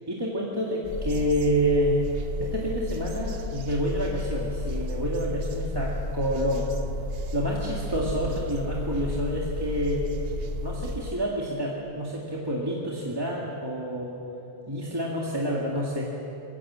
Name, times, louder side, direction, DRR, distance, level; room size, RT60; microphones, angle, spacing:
voice 1, 0.1-2.0 2.4-6.7 7.3-10.0 10.6-14.2 14.7-16.0, equal, 20° right, -4 dB, 2.1 m, -28 dB
sound 1, 0.8-11.1, right 5 dB, 65° right, 1.1 m, -37 dB
sound 2, 0.9-11.0, left 4 dB, 70° left, 2.0 m, -34 dB
22.5 x 16.5 x 7.5 m, 2.9 s
omnidirectional pair, 1.1 m